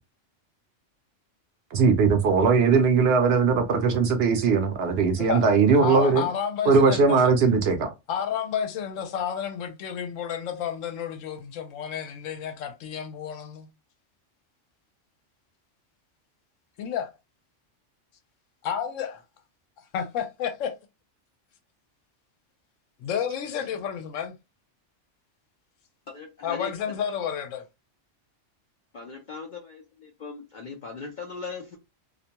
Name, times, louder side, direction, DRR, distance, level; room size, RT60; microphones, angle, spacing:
voice 1, 1.7-6.2 6.7-7.9, right 5 dB, 65° right, 0.7 m, -20 dB
voice 2, 5.7-7.3 8.1-13.7 16.8-17.1 18.6-19.2 19.9-20.7 23.0-24.4 26.4-27.6, left 8 dB, 85° left, 0.9 m, -31 dB
voice 3, 26.1-26.9 28.9-31.8, left 4 dB, 60° left, 0.5 m, -39 dB
2.4 x 2.1 x 2.8 m
omnidirectional pair, 1.3 m